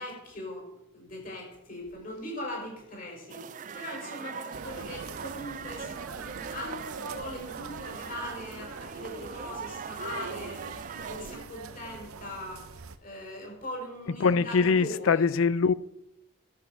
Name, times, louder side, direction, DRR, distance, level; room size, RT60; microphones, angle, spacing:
voice 1, 0.0-15.3, left 1 dB, 40° left, 4.9 m, -40 dB
sound 1, 3.3-11.4, right 6 dB, 35° right, 0.4 m, -41 dB
sound 2, 4.5-13.0, right 4 dB, 90° right, 0.8 m, -42 dB
voice 2, 14.2-15.7, left 5 dB, 75° left, 0.5 m, -23 dB
11.5 x 8.4 x 6.3 m
head